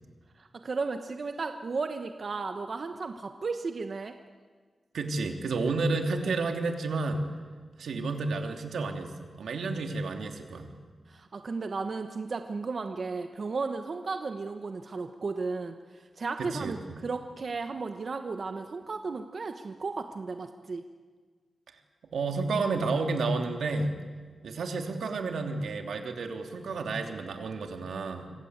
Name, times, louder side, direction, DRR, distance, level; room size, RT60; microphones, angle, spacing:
voice 1, 0.4-4.1 11.1-20.8, right 4 dB, 45° right, 6 dB, 1.2 m, -34 dB
voice 2, 4.9-7.2 7.8-10.7 16.4-16.7 22.1-24.0 24.4-28.3, right 3 dB, 90° right, 4 dB, 2.9 m, -31 dB
26.5 x 24.5 x 8.1 m, 1.5 s
wide cardioid pair, 140°, 0 cm